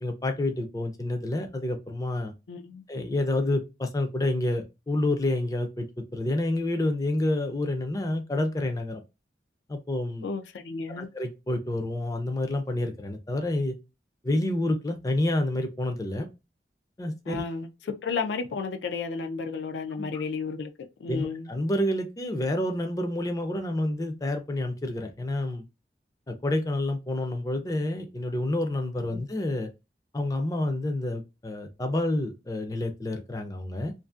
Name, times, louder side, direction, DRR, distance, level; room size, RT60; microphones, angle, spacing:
voice 1, 0.0-2.3 2.9-5.9 6.1-9.0 9.7-10.3 11.0-13.7 14.2-16.3 17.0-17.4 20.0-20.1 21.1-25.6 26.3-29.7 30.1-33.9, left 1 dB, 20° left, 0.4 m, -28 dB
voice 2, 2.5-2.8 10.2-11.1 17.3-17.7 18.0-20.7 21.0-21.5 29.0-29.2, left 5 dB, 85° left, 0.4 m, -32 dB
2.5 x 2.4 x 2.4 m
head